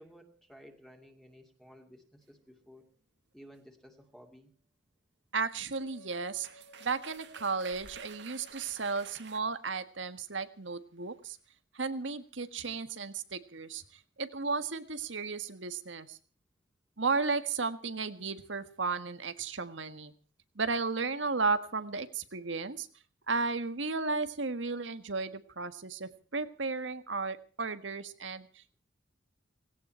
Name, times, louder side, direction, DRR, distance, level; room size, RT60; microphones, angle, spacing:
voice 1, 0.0-2.9 3.3-4.5, equal, 5° left, 3 dB, 2.4 m, -55 dB
sound 1, 4.1-4.3 5.8-5.9 6.1-9.4, right 7 dB, 65° right, 1.8 m, -51 dB
voice 2, 5.3-6.5 6.8-11.4 11.7-13.8 14.2-16.2 17.0-20.1 20.5-22.9 23.3-28.8, right 4 dB, 90° right, 10 dB, 1.7 m, -34 dB
sound 2, 5.8-9.2, equal, 70° left, 3.8 m, -56 dB
18.5 x 17.0 x 4.4 m, 0.41 s
head